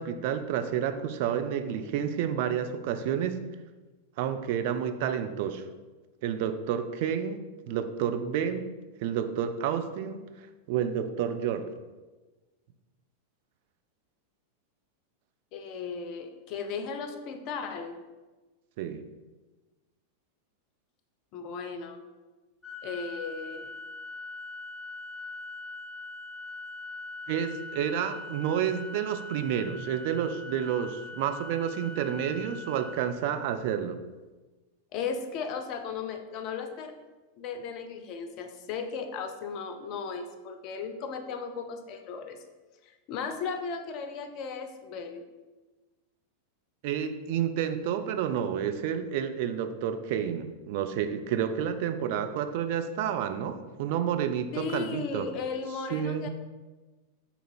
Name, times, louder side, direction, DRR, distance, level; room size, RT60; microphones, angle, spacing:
voice 1, 0.0-3.4 4.2-5.6 6.2-8.7 9.0-10.2 10.7-11.7 18.8-19.0 27.3-34.0 46.8-55.3 55.9-56.3, right 8 dB, 50° right, 8 dB, 0.3 m, -30 dB
voice 2, 15.5-18.0 21.3-22.0 22.8-23.7 34.9-36.9 37.4-42.4 42.8-45.2 54.5-56.3, left 5 dB, 40° left, 6 dB, 0.4 m, -36 dB
Organ, 22.6-33.7, left 2 dB, ahead, 1.1 m, -42 dB
3.8 x 2.8 x 4.2 m, 1.2 s
figure-of-eight pair, 90°, 0 cm